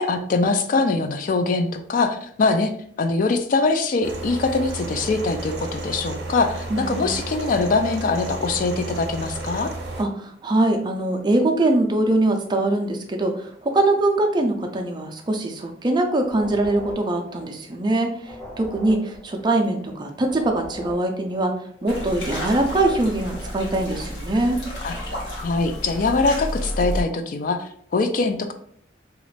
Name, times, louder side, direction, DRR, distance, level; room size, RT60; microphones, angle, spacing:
voice 1, 0.0-2.7 3.0-9.7 24.8-25.0 25.4-28.5, left 3 dB, 50° left, 8 dB, 0.3 m, -23 dB
sound 1, 4.0-10.0, right 2 dB, 75° right, 0.7 m, -33 dB
voice 2, 6.7-7.1 10.0-21.5 21.8-24.6, right 2 dB, 25° right, 3 dB, 0.4 m, -22 dB
sound 2, 16.2-17.9 18.2-21.9 22.2-23.5, equal, 15° left, 0.8 m, -41 dB
sound 3, 21.9-27.0, equal, 85° left, 1.2 m, -31 dB
3.0 x 2.4 x 3.2 m, 0.62 s
head